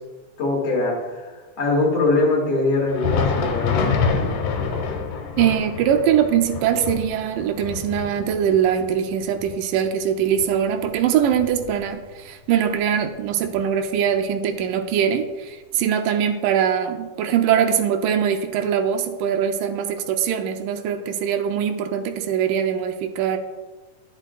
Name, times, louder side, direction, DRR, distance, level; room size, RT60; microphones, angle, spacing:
voice 1, 0.4-1.3 1.6-4.1, left 2 dB, 50° left, -3 dB, 2.8 m, -22 dB
Thunder, 2.8-12.2 12.6-12.8 13.4-13.6 14.6-14.7, left 5 dB, 85° left, 2.5 m, -28 dB
voice 2, 5.4-23.4, right 8 dB, 90° right, 6 dB, 2.2 m, -22 dB
10.5 x 8.8 x 2.4 m, 1.3 s
omnidirectional pair, 3.7 m